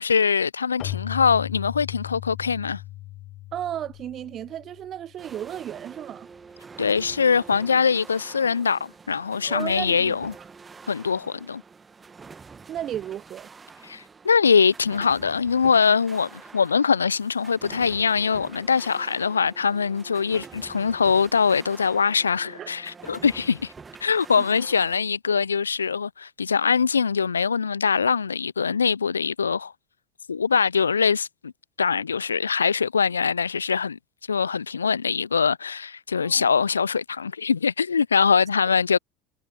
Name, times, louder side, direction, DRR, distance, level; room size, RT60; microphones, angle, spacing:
voice 1, 0.0-2.8 6.8-10.3 10.9-11.6 13.8-23.7 24.0-29.7 30.3-31.5 31.8-34.0 34.3-39.0, left 6 dB, 80° left, 0.5 m, -23 dB
Keyboard (musical), 0.8-5.3, left 17 dB, 50° left, 0.9 m, -37 dB
voice 2, 3.5-6.3 9.4-10.5 12.7-13.5 20.3-20.5 22.6-22.7 23.2-23.3 24.4-24.5 36.2-36.5, right 11 dB, 40° right, 0.9 m, -34 dB
sound 1, 5.2-25.0, right 5 dB, 20° right, 1.6 m, -46 dB
figure-of-eight pair, 70°, 0 cm